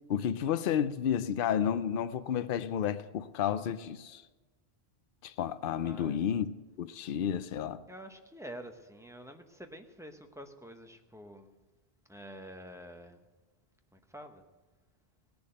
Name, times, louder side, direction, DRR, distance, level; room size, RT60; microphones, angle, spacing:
voice 1, 0.1-4.2 5.2-6.5 6.8-7.8, left 9 dB, 65° left, 0.7 m, -31 dB
voice 2, 5.8-6.2 7.9-11.5 12.1-13.2 13.9-14.4, equal, 5° right, 0.8 m, -48 dB
17.0 x 7.0 x 7.8 m
omnidirectional pair, 1.1 m